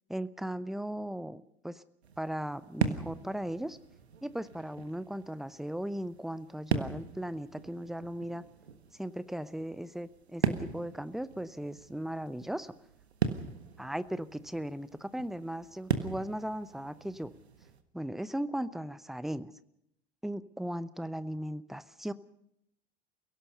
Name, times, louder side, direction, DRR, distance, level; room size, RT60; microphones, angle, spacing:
voice 1, 0.1-1.8 2.2-3.8 4.2-8.4 9.0-12.7 13.8-17.3 17.9-19.5 20.2-22.1, right 1 dB, ahead, 16 dB, 0.8 m, -37 dB
sound 1, 2.0-17.8, right 6 dB, 75° right, 1.5 m, -38 dB
30.0 x 17.0 x 5.4 m, 0.77 s
figure-of-eight pair, 75°, 32 cm